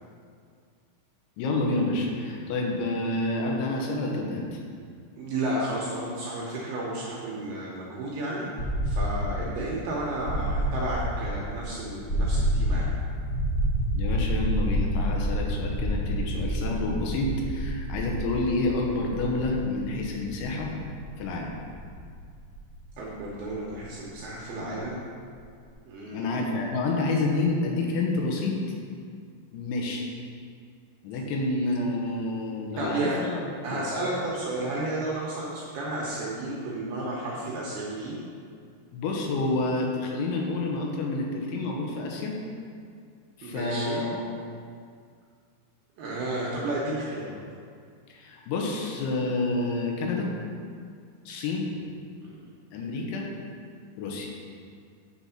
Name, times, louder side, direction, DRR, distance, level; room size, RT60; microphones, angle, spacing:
voice 1, 1.4-4.6 13.9-20.7 21.2-21.5 26.1-28.6 29.5-30.1 31.0-33.4 33.7-33.8 38.9-42.4 43.4-44.3 48.1-50.3 51.2-51.7 52.7-53.3 54.0-54.3, left 2 dB, 80° left, 0 dB, 3.3 m, -28 dB
voice 2, 5.2-8.5 8.8-12.9 23.0-25.0 25.9-26.5 32.8-33.2 33.6-38.2 43.4-44.1 46.0-47.4 52.2-52.4, right 1 dB, 75° right, -5 dB, 2.4 m, -32 dB
sound 1, 8.6-24.4, equal, 65° left, 1.0 m, -29 dB
8.9 x 4.1 x 5.7 m, 2.2 s
omnidirectional pair, 5.4 m